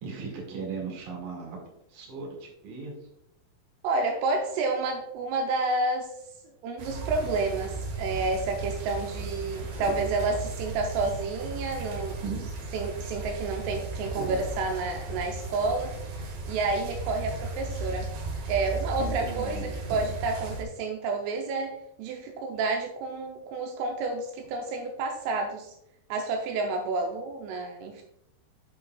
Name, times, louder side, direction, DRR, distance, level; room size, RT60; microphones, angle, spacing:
voice 1, 0.0-1.6 1.9-2.9 12.2-12.4 14.2-14.4 19.0-19.7, right 5 dB, 50° right, -3 dB, 2.6 m, -37 dB
voice 2, 3.8-6.1 6.6-12.2 12.7-15.9 16.5-18.1 18.5-25.8 26.1-28.0, right 3 dB, 85° right, 2 dB, 3.1 m, -30 dB
sound 1, 6.8-20.6, right 2 dB, 70° right, 2.3 m, -36 dB
8.4 x 6.4 x 2.3 m, 0.79 s
omnidirectional pair, 6.0 m